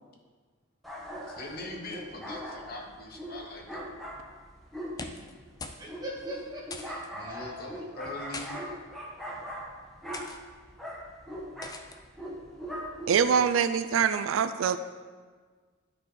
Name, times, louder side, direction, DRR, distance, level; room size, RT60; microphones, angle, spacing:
sound 1, 0.8-13.4, equal, ahead, 1.0 m, -41 dB
voice 1, 1.3-3.9 7.1-8.6, left 2 dB, 50° left, 1 dB, 1.0 m, -42 dB
sound 2, 4.8-5.3 5.6-5.9 6.1-6.3 6.7-7.1 8.0-8.5 9.3-9.5 10.1-10.4 11.6-12.0, left 3 dB, 20° left, 0.4 m, -41 dB
voice 2, 5.8-8.1 8.6-8.7, equal, 20° right, -4 dB, 1.7 m, -42 dB
voice 3, 13.1-14.8, right 7 dB, 80° right, 11 dB, 0.4 m, -24 dB
9.8 x 4.3 x 4.8 m, 1.5 s
head